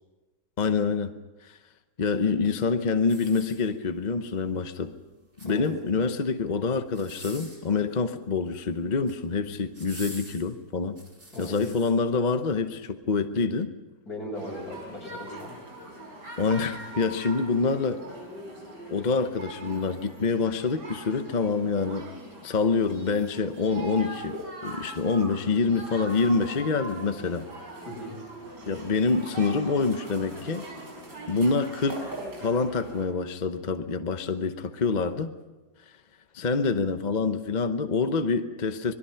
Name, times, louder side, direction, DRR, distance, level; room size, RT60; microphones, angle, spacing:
voice 1, 0.6-1.1 1.4-1.6 2.0-4.9 5.4-11.0 11.4-13.7 16.4-18.0 18.9-22.1 22.4-27.5 28.7-30.6 31.3-32.1 32.4-35.3 36.3-38.9, left 4 dB, 40° left, 8 dB, 0.7 m, -26 dB
sound 1, 3.0-4.1 5.2-5.9 6.9-7.7 8.8-9.2 9.7-11.9 12.5-12.6, right 1 dB, 35° right, 5.2 m, -46 dB
voice 2, 14.1-15.6 27.9-28.2, left 1 dB, 55° left, -1 dB, 6.9 m, -38 dB
sound 2, 14.4-33.1, right 1 dB, 70° right, 5.9 m, -41 dB
26.0 x 21.0 x 5.8 m, 1.2 s
omnidirectional pair, 1.9 m